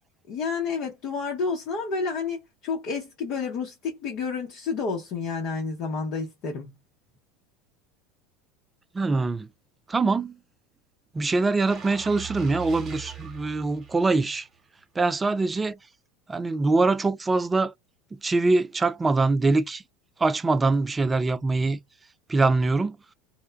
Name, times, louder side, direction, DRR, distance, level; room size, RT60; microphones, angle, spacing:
voice 1, 0.3-6.7, left 5 dB, 50° left, 0.8 m, -30 dB
voice 2, 8.9-9.5 9.9-10.4 11.1-14.5 15.0-15.8 16.3-17.7 18.1-19.8 20.2-21.8 22.3-23.0, right 3 dB, 20° right, 0.3 m, -23 dB
sound 1, 11.7-14.6 15.0-15.2, right 10 dB, 35° right, 1.0 m, -41 dB
2.2 x 2.1 x 3.0 m
hypercardioid pair, 80°, 0 cm